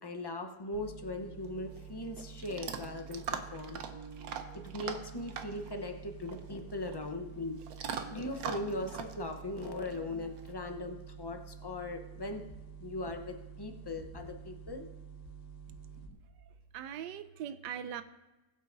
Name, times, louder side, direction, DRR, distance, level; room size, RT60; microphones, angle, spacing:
voice 1, 0.0-3.8 4.6-7.6 8.1-12.4 12.8-14.9, left 2 dB, 30° left, 5 dB, 0.4 m, -39 dB
sound 1, 0.7-16.1, right 7 dB, 65° left, 1.6 m, -49 dB
Chewing mastication / Dog, 1.4-10.5, right 6 dB, 65° right, 1.2 m, -43 dB
voice 2, 15.7-16.4 16.7-18.0, right 9 dB, 90° right, 11 dB, 1.2 m, -42 dB
21.0 x 7.8 x 2.6 m, 1.1 s
omnidirectional pair, 1.8 m